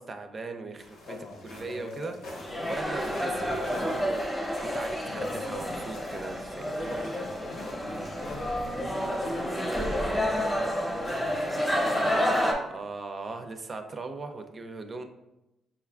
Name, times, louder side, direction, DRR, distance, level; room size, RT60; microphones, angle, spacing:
voice 1, 0.0-1.2 1.4-2.2 2.7-4.3 4.6-7.0 12.7-15.0, right 3 dB, 35° right, 6 dB, 0.4 m, -38 dB
sound 1, 0.8-11.8, left 1 dB, 90° left, 0.8 m, -48 dB
voice 2, 1.1-3.9 5.1-5.4 6.8-11.4 11.9-12.1, left 3 dB, 55° left, 2 dB, 0.6 m, -43 dB
sound 2, 2.3-12.5, equal, 10° left, 0.7 m, -30 dB
5.3 x 2.3 x 2.3 m, 0.95 s
cardioid pair, 90°, 0 cm